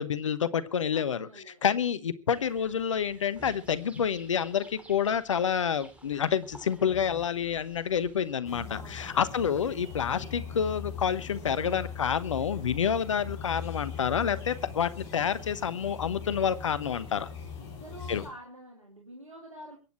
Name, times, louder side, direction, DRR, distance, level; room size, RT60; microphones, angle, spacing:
voice 1, 0.0-1.3 1.6-17.3 18.1-18.2, left 7 dB, 75° left, 16 dB, 1.0 m, -28 dB
voice 2, 0.9-1.6 8.7-9.1 17.6-19.8, equal, 90° right, -1 dB, 3.0 m, -47 dB
sound 1, 2.3-8.3, right 1 dB, 5° right, 3.0 m, -52 dB
sound 2, 8.4-18.3, left 6 dB, 55° left, 4.5 m, -40 dB
22.5 x 9.5 x 4.4 m, 0.34 s
figure-of-eight pair, 90°, 16 cm